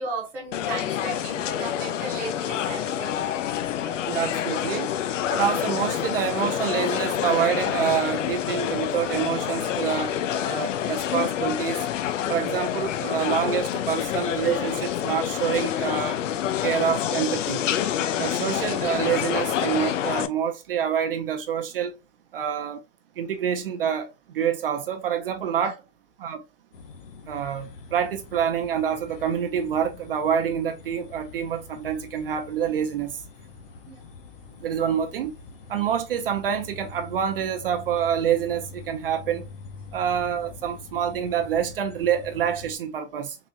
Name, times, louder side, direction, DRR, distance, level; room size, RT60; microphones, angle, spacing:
voice 1, 0.0-3.2 3.8-4.0 33.9-34.0, right 2 dB, 5° right, 0.6 m, -35 dB
sound 1, 0.5-20.3, left 10 dB, 85° left, 0.6 m, -27 dB
voice 2, 4.1-4.9 5.3-10.1 10.5-11.9 12.3-16.2 16.6-17.6 18.2-22.0 22.3-22.8 23.2-25.8 26.2-26.4 27.3-33.2 34.6-35.3 35.7-39.4 39.9-43.4, right 8 dB, 50° right, 0.5 m, -27 dB
sound 2, 26.7-42.8, left 4 dB, 50° left, 0.7 m, -45 dB
3.8 x 2.8 x 2.6 m
supercardioid pair, 175°, 36 cm